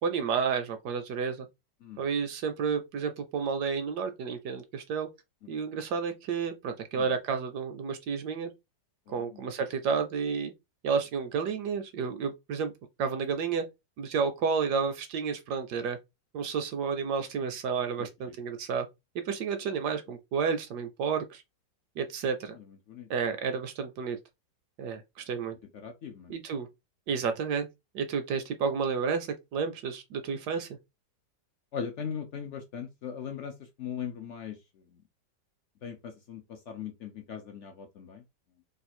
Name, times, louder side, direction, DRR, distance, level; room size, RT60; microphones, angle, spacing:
voice 1, 0.0-1.5 2.0-5.1 5.5-8.5 9.1-10.5 10.8-12.7 13.0-13.7 14.0-16.0 16.3-18.9 19.2-21.4 22.0-22.5 23.1-24.2 24.8-25.6 26.3-26.7 27.1-27.7 27.9-30.7, right 6 dB, 75° right, 1.1 m, -31 dB
voice 2, 18.0-18.3 22.9-23.1 25.8-26.3 31.7-34.6 35.8-38.2, left 7 dB, 75° left, 0.6 m, -39 dB
3.1 x 2.5 x 4.2 m
omnidirectional pair, 2.0 m